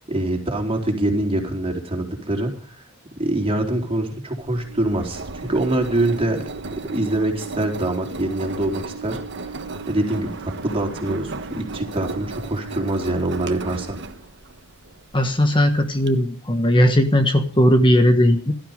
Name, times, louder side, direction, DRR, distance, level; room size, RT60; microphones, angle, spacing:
voice 1, 0.1-2.5 3.2-6.5 6.9-9.2 9.9-14.0, right 1 dB, 25° right, 2 dB, 4.0 m, -24 dB
Engine, 4.4-16.1, right 4 dB, 60° right, 1.3 m, -35 dB
voice 2, 15.1-18.5, equal, 25° left, 6 dB, 1.4 m, -17 dB
17.5 x 13.0 x 5.2 m, 0.41 s
head